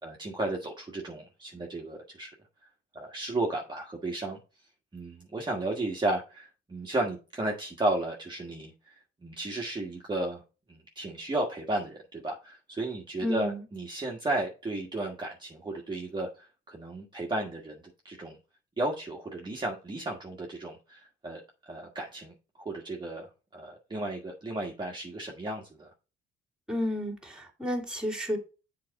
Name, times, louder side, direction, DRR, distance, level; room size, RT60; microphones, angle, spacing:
voice 1, 0.0-2.3 2.9-4.4 4.9-10.4 10.7-18.4 18.8-22.3 22.6-25.9, right 2 dB, 25° right, 1.5 m, -34 dB
voice 2, 13.2-13.6 26.7-28.4, left 1 dB, 5° right, 2.5 m, -31 dB
7.6 x 4.2 x 4.1 m
cardioid pair, 90°, 20 cm